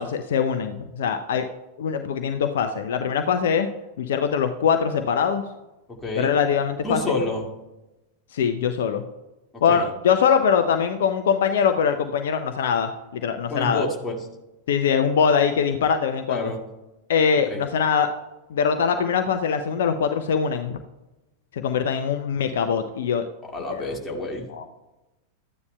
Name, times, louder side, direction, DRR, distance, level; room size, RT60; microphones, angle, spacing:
voice 1, 0.0-1.5 1.8-3.7 4.0-5.4 6.2-7.0 8.3-9.0 9.6-13.8 14.7-16.5 17.1-18.1 18.5-20.8 21.5-23.2 23.7-23.8 24.5-24.6, left 7 dB, 60° left, 7 dB, 0.5 m, -22 dB
voice 2, 5.9-6.3 6.8-7.5 9.7-9.9 13.5-14.2 16.3-16.6 17.5-17.7 23.5-24.5, left 2 dB, 10° left, -1 dB, 2.0 m, -28 dB
13.5 x 9.5 x 2.2 m, 1.0 s
figure-of-eight pair, 90°, 0 cm